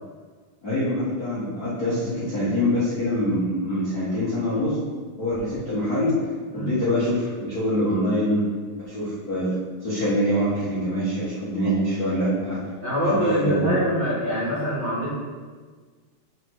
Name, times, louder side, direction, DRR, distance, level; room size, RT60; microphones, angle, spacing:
voice 1, 0.6-4.7 5.2-6.1 6.5-8.4 8.8-9.5 9.8-12.6 13.0-13.6, equal, 35° left, -10 dB, 1.6 m, -24 dB
voice 2, 12.8-15.1, equal, 35° right, -12 dB, 2.7 m, -24 dB
5.8 x 5.4 x 6.4 m, 1.5 s
omnidirectional pair, 4.0 m